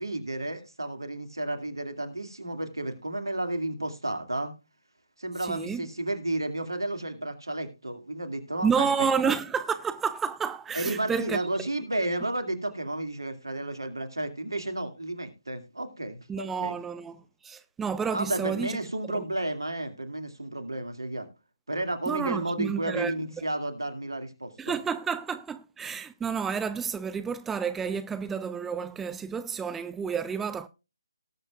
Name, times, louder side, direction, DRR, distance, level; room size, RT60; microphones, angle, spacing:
voice 1, 0.0-4.5 5.2-9.1 10.7-16.8 18.1-21.3 21.7-24.7, right 1 dB, 80° right, 2.2 m, -32 dB
voice 2, 5.4-5.8 8.6-11.4 16.3-18.8 19.1-19.2 22.1-23.1 24.6-30.7, right 6 dB, 5° right, 0.4 m, -30 dB
18.5 x 7.7 x 2.4 m
figure-of-eight pair, 145°, 2 cm